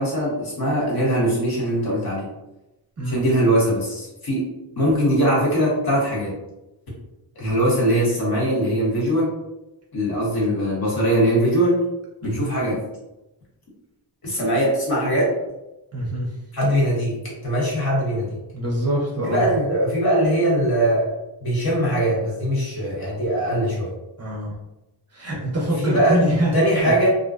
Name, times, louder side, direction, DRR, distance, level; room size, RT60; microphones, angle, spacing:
voice 1, 0.0-2.2 3.0-4.4 4.8-6.3 7.4-9.3 9.9-11.7 12.2-12.8 14.2-15.3 16.5-18.4 19.2-23.9 25.8-26.2 26.5-27.1, right 1 dB, 50° left, -6 dB, 1.0 m, -21 dB
voice 2, 15.9-16.3 18.5-19.4 23.5-23.6 24.2-24.5 25.1-26.6 26.8-26.9, right 1 dB, 35° right, -4 dB, 0.5 m, -24 dB
2.4 x 2.1 x 2.3 m, 0.95 s
wide cardioid pair, 155°, 46 cm